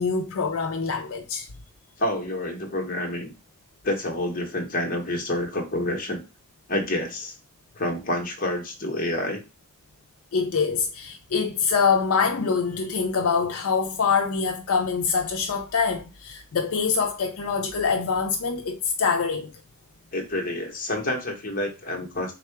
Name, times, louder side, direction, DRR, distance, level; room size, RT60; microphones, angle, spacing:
voice 1, 0.0-1.5 10.3-19.5, left 5 dB, 70° left, 0.5 m, -24 dB
voice 2, 2.0-3.3 3.8-6.2 6.7-7.3 7.8-9.4 20.1-22.3, left 1 dB, 40° left, 0.9 m, -28 dB
3.7 x 2.3 x 4.4 m
head